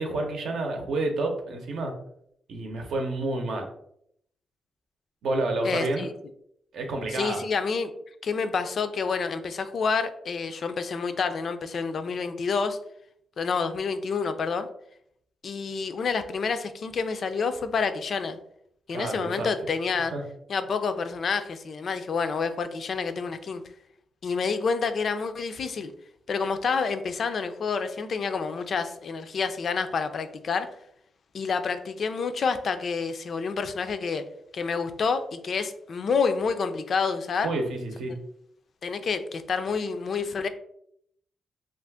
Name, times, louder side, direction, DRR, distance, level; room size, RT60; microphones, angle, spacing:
voice 1, 0.0-1.9 2.5-3.7 5.2-6.0 6.7-7.4 18.9-19.5 20.1-20.2 37.4-38.2, right 2 dB, 80° right, 3 dB, 0.7 m, -29 dB
voice 2, 5.6-6.1 7.1-7.9 8.2-12.8 13.4-14.7 15.4-18.4 18.9-20.1 20.5-23.6 24.2-25.9 26.3-30.7 31.3-34.2 34.5-37.5 38.8-40.5, left 5 dB, 55° left, 9 dB, 0.3 m, -28 dB
2.5 x 2.4 x 3.5 m, 0.71 s
cardioid pair, 105°, 0 cm